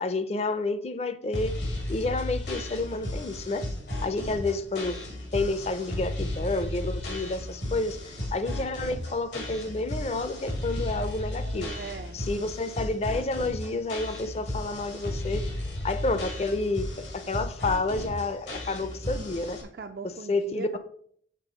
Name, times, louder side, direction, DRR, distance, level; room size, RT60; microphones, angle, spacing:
voice 1, 0.0-1.5 1.9-3.6 4.0-5.0 5.3-11.7 12.1-15.4 15.8-19.6 20.3-20.8, left 2 dB, 35° left, 11 dB, 0.5 m, -30 dB
sound 1, 1.3-19.6, left 1 dB, 85° left, 2.0 m, -34 dB
voice 2, 11.4-12.5 19.7-20.8, right 4 dB, 55° right, 6 dB, 0.4 m, -40 dB
6.8 x 3.4 x 6.2 m, 0.63 s
head